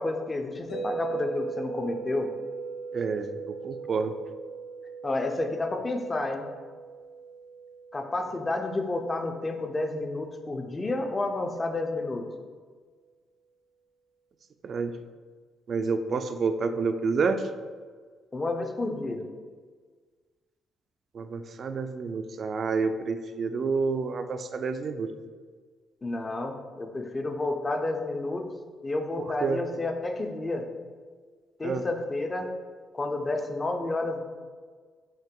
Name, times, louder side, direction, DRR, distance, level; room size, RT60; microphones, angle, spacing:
voice 1, 0.0-2.3 5.0-6.5 7.9-12.3 18.3-19.3 26.0-28.5 28.8-30.7 31.6-32.5 32.9-34.2, left 2 dB, 20° left, 5 dB, 0.4 m, -30 dB
sound 1, 0.7-10.8, right 5 dB, 80° left, 1.3 m, -40 dB
voice 2, 2.9-4.1 14.6-14.9 15.7-17.4 21.1-25.1 29.4-29.6 31.6-31.8, right 4 dB, 45° right, 8 dB, 0.3 m, -29 dB
4.5 x 2.9 x 3.7 m, 1.5 s
cardioid pair, 125°, 0 cm